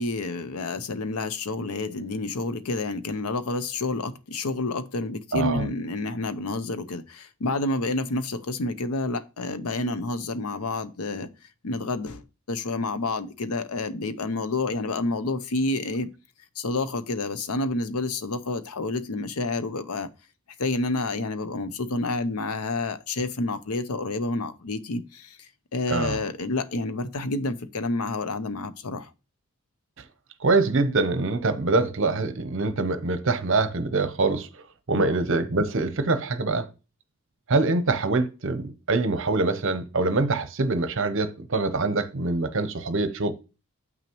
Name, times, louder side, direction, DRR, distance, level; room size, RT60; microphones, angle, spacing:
voice 1, 0.0-11.3 11.6-16.1 16.6-20.1 20.6-29.1 34.9-35.1, left 2 dB, 85° left, 0.7 m, -29 dB
voice 2, 5.3-5.7 25.9-26.2 30.4-34.5 34.9-36.7 37.5-43.3, right 3 dB, 60° right, 0.8 m, -24 dB
7.5 x 6.0 x 3.0 m
head